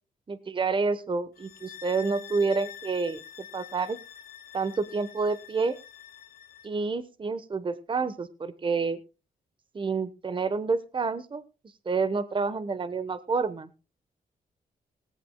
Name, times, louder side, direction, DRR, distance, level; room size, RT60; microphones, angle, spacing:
voice 1, 0.3-3.2 3.5-4.0 4.5-5.8 6.6-9.0 9.7-11.4 11.8-13.7, right 4 dB, 30° right, 13 dB, 1.0 m, -28 dB
sound 1, 1.4-6.7, left 10 dB, 70° left, 2.0 m, -46 dB
18.0 x 15.0 x 2.2 m, 0.30 s
cardioid pair, 100°, 16 cm